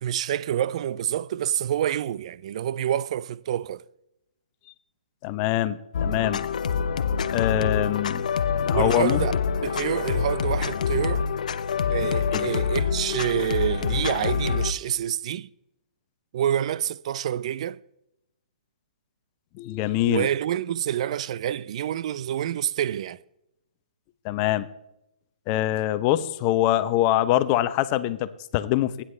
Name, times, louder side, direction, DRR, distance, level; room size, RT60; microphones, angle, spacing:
voice 1, 0.0-3.9 8.7-9.3 9.6-11.3 11.9-15.5 16.3-17.8 20.1-23.2, right 10 dB, 50° right, 0.4 m, -27 dB
voice 2, 5.2-6.4 7.3-8.2 8.6-9.3 12.3-12.5 19.6-20.3 24.2-24.7 25.5-29.0, left 14 dB, 30° left, 0.8 m, -24 dB
sound 1, 5.9-14.7, left 6 dB, 70° left, 0.8 m, -26 dB
25.5 x 10.0 x 3.3 m
hypercardioid pair, 135°, 4 cm